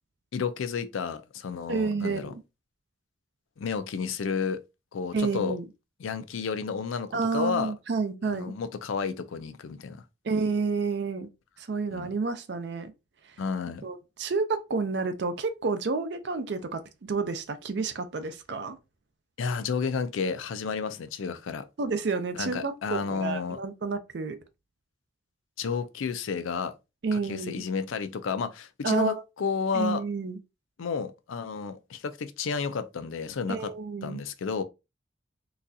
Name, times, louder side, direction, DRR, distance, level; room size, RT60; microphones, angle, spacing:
voice 1, 0.3-2.3 3.6-4.6 4.9-5.6 6.0-7.7 8.2-10.0 11.9-12.1 13.4-13.9 19.4-21.6 22.3-23.6 25.6-26.7 27.1-30.0 30.8-33.7 34.0-34.6, left 5 dB, 90° left, 0.4 m, -31 dB
voice 2, 1.7-2.3 5.1-5.7 7.1-8.5 10.2-11.3 11.6-12.9 13.8-16.8 17.1-18.8 21.8-24.4 27.0-27.6 28.8-29.1 29.7-30.4 33.5-34.2, right 4 dB, 60° right, 0.5 m, -30 dB
3.9 x 2.3 x 2.6 m
head